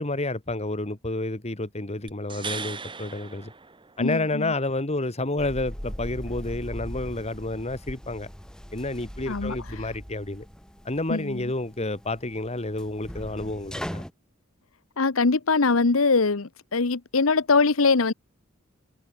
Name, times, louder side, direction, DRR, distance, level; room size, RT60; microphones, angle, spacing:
voice 1, 0.0-3.5 4.0-8.3 8.7-10.5 10.8-14.0, left 2 dB, 30° left, 2.0 m, -30 dB
sound 1, 2.1-4.3 7.7-7.8, right 5 dB, 25° right, 1.3 m, -38 dB
voice 2, 4.0-4.5 9.3-9.5 11.1-11.4 15.0-18.1, left 4 dB, 85° left, 1.0 m, -22 dB
sound 2, 5.4-14.1, equal, 5° left, 2.0 m, -39 dB
head